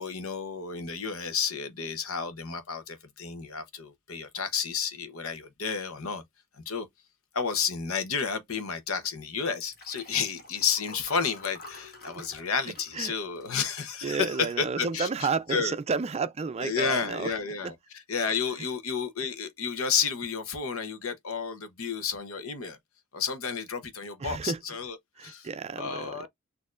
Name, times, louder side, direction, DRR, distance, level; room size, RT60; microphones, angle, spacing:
voice 1, 0.0-6.2 6.6-6.9 7.3-15.1 15.5-15.8 16.6-22.8 23.1-25.5 25.8-26.3, left 6 dB, 90° left, 0.9 m, -31 dB
Liquid, 9.5-14.2 14.7-14.9 15.2-15.3, left 3 dB, 50° left, 1.5 m, -48 dB
voice 2, 14.0-17.3 17.6-17.7 24.2-24.6 25.2-26.3, right 5 dB, 30° right, 0.4 m, -31 dB
6.5 x 2.7 x 2.4 m
head